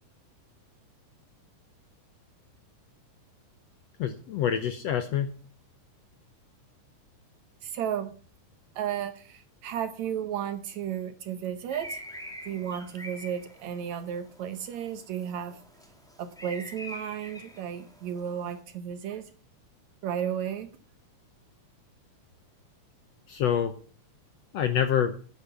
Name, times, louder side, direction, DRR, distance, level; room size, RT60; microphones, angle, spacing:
voice 1, 4.0-5.3 23.3-23.7 24.5-25.2, left 9 dB, 70° left, 9 dB, 1.6 m, -26 dB
voice 2, 7.6-8.1 8.8-12.0 12.5-15.6 16.2-19.2 20.0-20.7, right 9 dB, 70° right, 11 dB, 1.9 m, -33 dB
sound 1, 11.7-18.6, equal, ahead, 1.2 m, -45 dB
10.0 x 8.9 x 6.9 m, 0.41 s
omnidirectional pair, 3.9 m